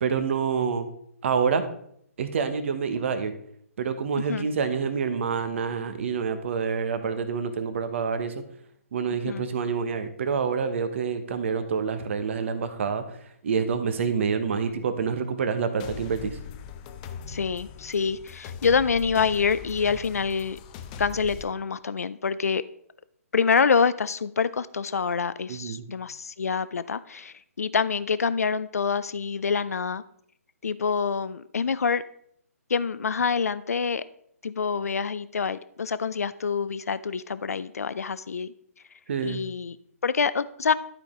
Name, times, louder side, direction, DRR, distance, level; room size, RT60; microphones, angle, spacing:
voice 1, 0.0-0.9 1.2-1.6 2.2-3.3 3.8-8.3 8.9-13.0 13.4-16.4 25.5-25.8 39.1-39.4, right 6 dB, 50° right, 9 dB, 1.0 m, -27 dB
voice 2, 4.2-4.5 9.2-9.4 17.3-20.6 21.0-22.6 23.3-30.0 30.6-32.0 32.7-34.0 34.4-38.5 39.2-39.8 40.0-40.7, left 5 dB, 75° left, 16 dB, 0.4 m, -26 dB
sound 1, 15.8-21.4, left 7 dB, 30° left, 0.6 m, -41 dB
12.0 x 5.1 x 3.7 m, 0.69 s
figure-of-eight pair, 135°, 8 cm